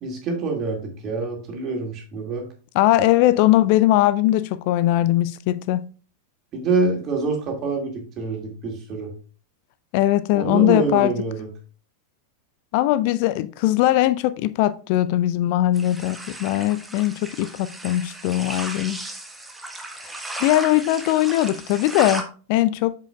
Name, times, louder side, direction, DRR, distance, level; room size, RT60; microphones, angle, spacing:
voice 1, 0.0-2.5 6.5-9.1 10.3-11.5, right 3 dB, 35° right, 2.3 m, -26 dB
voice 2, 2.7-5.8 9.9-11.1 12.7-19.0 20.4-22.2 22.5-22.9, left 14 dB, 45° left, 0.3 m, -20 dB
sound 1, 15.8-22.2, right 2 dB, 5° right, 1.2 m, -35 dB
8.0 x 6.7 x 2.4 m
figure-of-eight pair, 90°, 0 cm